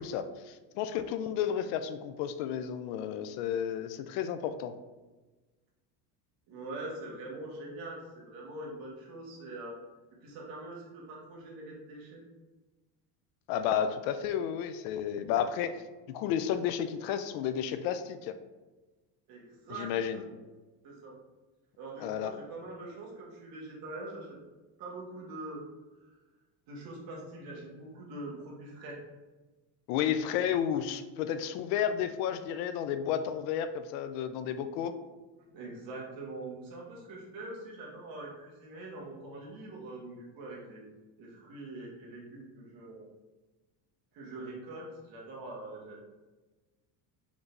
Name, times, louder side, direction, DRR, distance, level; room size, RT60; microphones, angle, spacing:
voice 1, 0.0-4.7 13.5-18.4 19.7-20.2 22.0-22.3 29.9-34.9, left 9 dB, 85° left, 10 dB, 0.5 m, -32 dB
voice 2, 6.5-9.8 10.2-12.2 19.3-20.4 20.8-21.1 21.8-24.4 24.8-25.6 26.0-26.2 26.7-29.0 35.4-40.8 41.2-43.0 44.1-46.0, right 2 dB, 45° right, -3 dB, 1.3 m, -43 dB
5.0 x 3.3 x 2.5 m, 1.2 s
cardioid pair, 165°, 47 cm